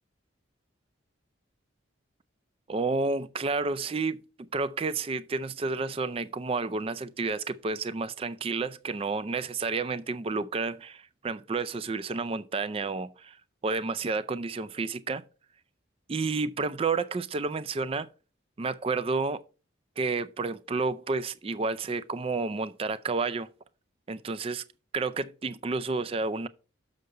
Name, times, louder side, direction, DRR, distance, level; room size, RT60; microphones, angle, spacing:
voice 1, 2.7-4.2 4.5-13.4 13.6-15.2 16.1-18.1 18.6-19.4 20.0-23.5 24.1-24.6 24.9-26.5, right 4 dB, 25° right, 0.3 m, -30 dB
6.8 x 6.6 x 4.7 m
head